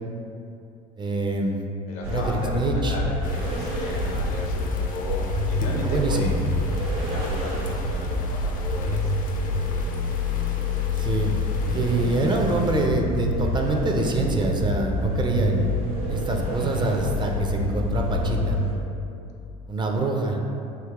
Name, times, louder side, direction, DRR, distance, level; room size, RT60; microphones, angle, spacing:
voice 1, 1.0-1.6 2.1-3.0 5.8-6.4 9.4-9.5 11.0-11.3 11.6-15.7 16.1-18.6 19.7-20.4, right 2 dB, 25° right, 2 dB, 0.4 m, -25 dB
voice 2, 1.9-6.3 7.0-9.1 9.7-9.9, left 2 dB, 75° left, -1 dB, 0.7 m, -34 dB
sound 1, 2.0-18.7, left 1 dB, 80° right, 1.1 m, -27 dB
sound 2, 3.2-12.9, left 4 dB, 45° left, 0.4 m, -43 dB
3.6 x 2.8 x 2.9 m, 2.7 s
hypercardioid pair, 75°, 19 cm